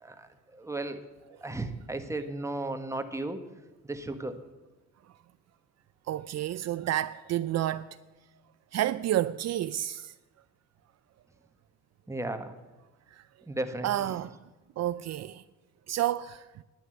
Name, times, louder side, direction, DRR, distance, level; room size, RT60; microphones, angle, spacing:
voice 1, 0.0-1.0 1.4-3.4 3.8-4.4 12.1-12.5 13.5-14.1, right 2 dB, 10° right, 1.4 m, -35 dB
voice 2, 6.1-8.0 8.7-10.1 13.1-13.2 13.8-14.4 14.8-15.4 15.9-16.5, right 13 dB, 60° right, 0.4 m, -30 dB
11.0 x 9.2 x 7.8 m
cardioid pair, 90°, 30 cm